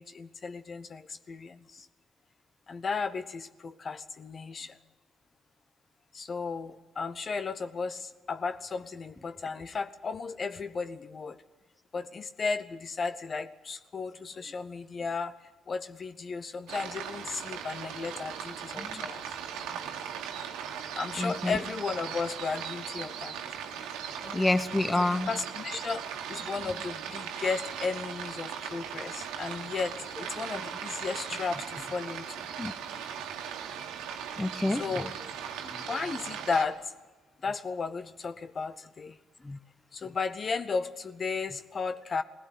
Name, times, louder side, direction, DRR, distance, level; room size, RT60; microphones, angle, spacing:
voice 1, 0.0-1.9 2.7-4.8 6.1-11.4 11.9-15.3 15.7-19.4 20.9-23.4 25.3-32.4 34.7-35.1 35.9-36.9 37.4-39.2 39.9-42.2, left 4 dB, 45° left, 12 dB, 1.0 m, -34 dB
sound 1, 16.7-36.7, right 8 dB, 80° right, 1.7 m, -38 dB
voice 2, 21.2-21.6 24.2-25.3 32.6-32.7 34.4-35.0 35.7-35.8 39.4-39.6, left 2 dB, 20° left, 13 dB, 0.9 m, -28 dB
20.0 x 16.0 x 9.8 m, 1.2 s
hypercardioid pair, 55°, 0 cm